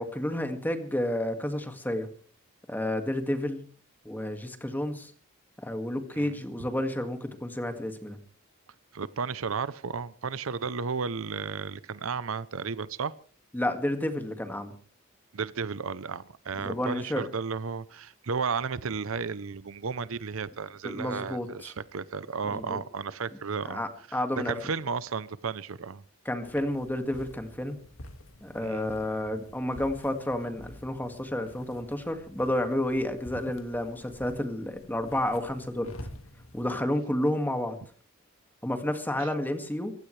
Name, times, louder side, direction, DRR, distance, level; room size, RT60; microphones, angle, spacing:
voice 1, 0.0-2.1 2.7-3.6 4.1-5.1 5.6-8.2 13.5-14.7 16.6-17.3 20.8-21.7 22.4-22.8 23.7-24.6 26.3-27.8 28.4-35.9 36.5-37.8 38.6-39.9, left 1 dB, 10° left, 2.0 m, -30 dB
voice 2, 6.1-6.7 8.9-13.1 15.3-23.8 24.4-26.0 28.6-28.9 39.2-39.3, right 5 dB, 70° right, 0.7 m, -33 dB
sound 1, 26.4-36.7, left 1 dB, 70° left, 2.0 m, -48 dB
25.5 x 15.5 x 3.3 m
head